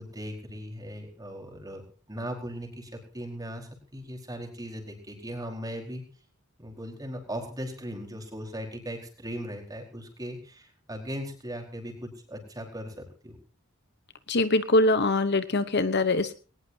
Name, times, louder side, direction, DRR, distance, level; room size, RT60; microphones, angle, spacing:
voice 1, 0.0-1.8 2.1-6.0 6.6-13.4, equal, 20° right, 2 dB, 4.7 m, -38 dB
voice 2, 14.3-16.4, left 2 dB, 50° left, 12 dB, 1.0 m, -23 dB
21.0 x 19.5 x 2.8 m, 0.36 s
head